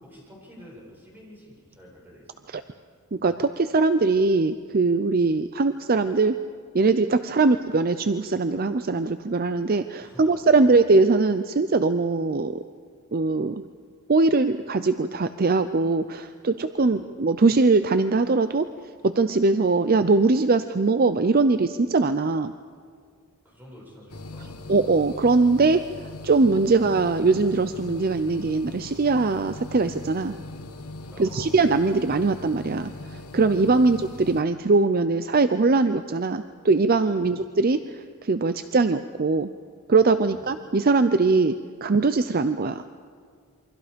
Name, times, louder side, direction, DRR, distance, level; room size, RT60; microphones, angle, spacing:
voice 1, 0.0-2.3 5.2-5.4 7.4-7.5 10.0-10.8 16.8-17.0 23.4-24.6 31.1-31.6 37.1-37.4 40.3-40.5, equal, 10° right, -4 dB, 7.5 m, -49 dB
voice 2, 3.1-6.4 6.7-12.6 13.1-13.6 14.1-18.7 19.0-22.5 24.7-25.9 26.2-30.4 31.2-39.5 39.9-42.8, right 3 dB, 40° right, 10 dB, 0.5 m, -21 dB
sound 1, 24.1-34.4, left 2 dB, 85° left, 1.5 m, -40 dB
28.5 x 24.0 x 5.2 m, 2.1 s
head